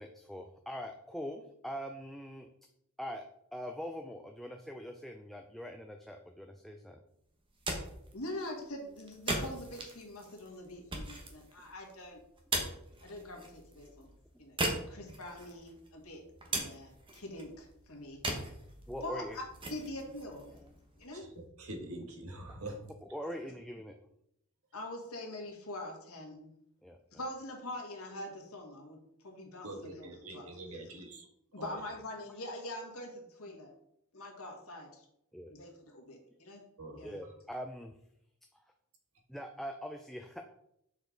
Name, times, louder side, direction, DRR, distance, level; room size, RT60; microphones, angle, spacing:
voice 1, 0.0-2.5 3.0-3.2 3.5-7.0 18.9-19.4 20.5-20.6 23.0-23.9 26.8-27.0 30.7-30.9 35.3-35.5 37.0-37.9 39.3-40.5, equal, ahead, 3 dB, 0.4 m, -43 dB
sound 1, 7.4-21.3, right 2 dB, 25° right, 1.1 m, -41 dB
voice 2, 8.1-12.2 13.0-14.1 14.4-14.6 14.9-16.2 16.5-18.2 19.0-20.5 21.0-21.3 24.7-26.5 27.1-30.6 31.5-33.7 34.1-35.1 35.5-36.6 37.0-37.2, left 1 dB, 85° left, 2 dB, 1.6 m, -44 dB
voice 3, 21.6-22.8 29.6-31.2 31.6-31.7 36.8-37.0, right 1 dB, 80° right, 3 dB, 1.4 m, -44 dB
6.4 x 4.9 x 3.9 m, 0.76 s
head